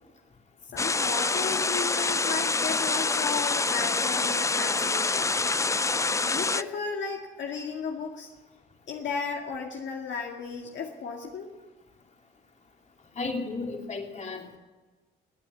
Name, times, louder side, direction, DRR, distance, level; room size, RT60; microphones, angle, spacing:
voice 1, 0.7-5.3 6.2-8.3 8.9-11.5, left 5 dB, 65° left, 1 dB, 2.0 m, -34 dB
sound 1, 0.8-6.6, left 3 dB, 15° left, 0.4 m, -26 dB
voice 2, 13.2-14.6, left 3 dB, 35° left, 2 dB, 3.0 m, -34 dB
19.0 x 9.0 x 8.4 m, 1.2 s
cardioid pair, 90°, 20 cm